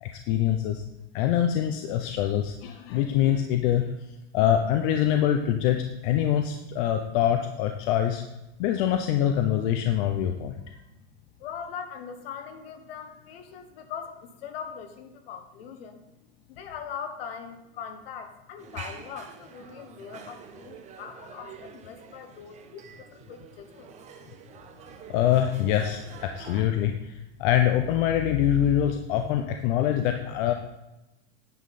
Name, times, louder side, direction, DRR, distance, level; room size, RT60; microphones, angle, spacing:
voice 1, 0.0-0.8 1.1-3.9 4.3-8.2 8.6-10.6 25.1-30.5, left 10 dB, 55° left, 5 dB, 0.7 m, -24 dB
voice 2, 11.4-16.0 16.5-23.9, left 7 dB, 70° left, 7 dB, 1.3 m, -41 dB
sound 1, 18.6-26.6, right 7 dB, 20° right, 0.7 m, -47 dB
9.6 x 5.5 x 4.1 m, 0.94 s
supercardioid pair, 140°, 31 cm